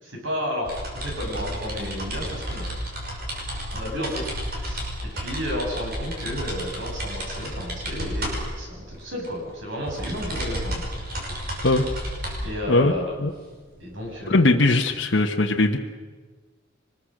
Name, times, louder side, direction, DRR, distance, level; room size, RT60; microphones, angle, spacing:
voice 1, 0.0-2.7 3.7-10.8 12.4-13.2 13.8-14.6, left 1 dB, 75° right, 0 dB, 7.4 m, -32 dB
sound 1, 0.7-14.4, equal, 55° right, 5.9 m, -32 dB
voice 2, 14.3-15.8, left 2 dB, 65° left, 1 dB, 1.2 m, -19 dB
24.5 x 21.0 x 6.5 m, 1.4 s
head